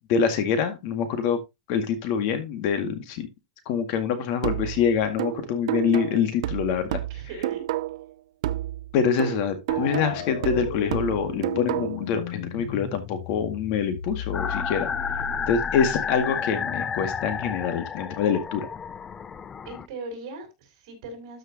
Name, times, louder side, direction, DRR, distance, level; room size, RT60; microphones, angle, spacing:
voice 1, 0.1-1.4 1.7-3.3 3.7-7.0 8.9-14.9 15.5-18.7, left 7 dB, 45° left, 2.0 m, -25 dB
sound 1, 4.4-8.1 8.4-12.1, right 14 dB, 70° right, 0.7 m, -30 dB
voice 2, 6.9-7.7 19.7-21.4, right 3 dB, 50° right, 5.8 m, -39 dB
sound 2, 9.7-16.3, left 7 dB, 85° left, 2.0 m, -36 dB
sound 3, 14.3-19.9, left 7 dB, 15° left, 0.4 m, -31 dB
13.0 x 6.4 x 2.8 m
supercardioid pair, 170°, 3 cm